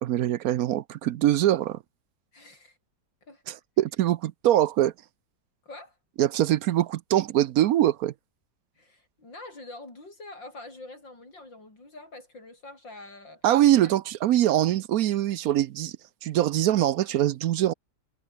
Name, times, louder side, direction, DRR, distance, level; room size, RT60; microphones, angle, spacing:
voice 1, 0.0-1.8 3.5-4.9 6.2-8.1 13.4-15.9 16.2-17.7, right 12 dB, 65° right, 0.9 m, -23 dB
voice 2, 2.3-2.8 3.2-3.4 5.6-6.0 8.8-13.5 13.8-13.9, left 2 dB, 80° left, 8.5 m, -45 dB
omnidirectional pair, 2.0 m